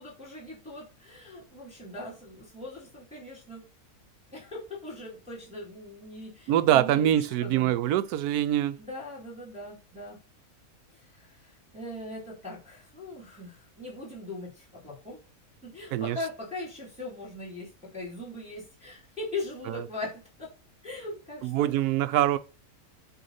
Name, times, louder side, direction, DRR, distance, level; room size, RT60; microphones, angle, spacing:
voice 1, 0.0-3.7 4.3-7.1 7.4-7.7 8.8-10.2 11.1-15.2 15.6-20.5 20.8-21.7, left 2 dB, 5° right, 2.4 m, -40 dB
voice 2, 6.5-8.8 15.9-16.2 19.7-19.8 21.4-22.4, right 12 dB, 90° right, 1.1 m, -24 dB
8.0 x 2.9 x 5.5 m
omnidirectional pair, 1.6 m